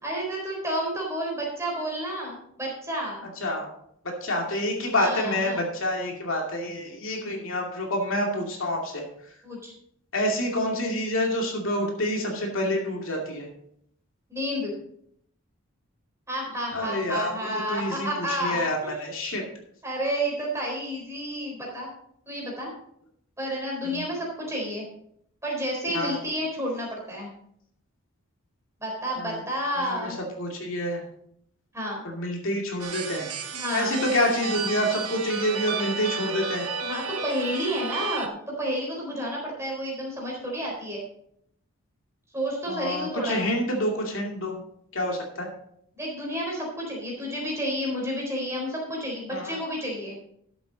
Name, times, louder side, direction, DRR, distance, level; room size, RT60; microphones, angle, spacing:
voice 1, 0.0-3.3 5.0-5.6 9.4-9.7 14.3-14.7 16.3-18.9 19.8-21.9 22.3-22.7 23.4-24.9 25.4-27.3 28.8-30.2 31.7-32.0 33.5-34.0 36.8-41.0 42.3-43.4 46.0-50.2, equal, 10° right, -2 dB, 3.8 m, -30 dB
voice 2, 4.2-9.0 10.1-13.5 16.7-19.4 23.9-24.0 25.9-26.2 29.2-29.4 29.8-31.0 32.0-33.3 33.7-36.6 42.7-44.5 44.9-45.5 49.3-49.6, left 1 dB, 65° left, 0 dB, 2.5 m, -28 dB
sound 1, 32.8-38.3, right 5 dB, 80° right, 1.1 m, -33 dB
13.0 x 8.0 x 4.0 m, 0.70 s
head